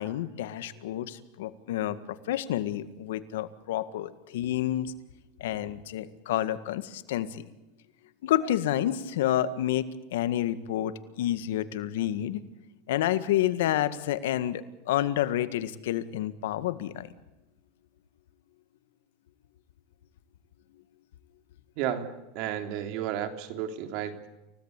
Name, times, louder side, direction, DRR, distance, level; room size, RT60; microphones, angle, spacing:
voice 1, 0.0-4.9 5.4-7.4 8.2-12.4 12.9-17.1, left 12 dB, 80° left, 12 dB, 1.8 m, -29 dB
voice 2, 21.8-24.3, right 10 dB, 60° right, 7 dB, 3.4 m, -33 dB
29.0 x 17.0 x 8.3 m, 0.97 s
supercardioid pair, 130°, 0 cm